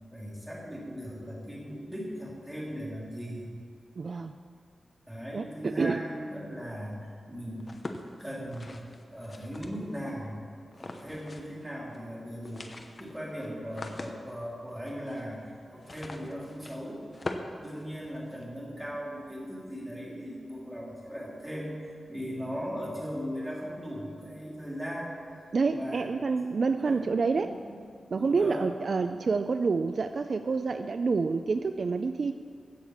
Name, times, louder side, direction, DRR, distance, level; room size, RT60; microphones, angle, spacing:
voice 1, 0.1-3.5 5.1-7.7 8.2-8.8 9.1-10.3 10.7-17.0 17.6-21.7 22.1-25.2 25.7-26.4 26.7-27.8 28.1-28.7, equal, 5° right, -5 dB, 3.1 m, -38 dB
voice 2, 4.0-4.3 5.3-6.0 25.5-27.5 28.1-32.3, right 4 dB, 50° right, 9 dB, 0.4 m, -28 dB
sound 1, 7.6-10.1 10.7-11.6 11.9-12.0 12.3-18.4, left 2 dB, 35° left, 0.9 m, -43 dB
15.5 x 6.5 x 7.2 m, 2.2 s
wide cardioid pair, 125°, 0 cm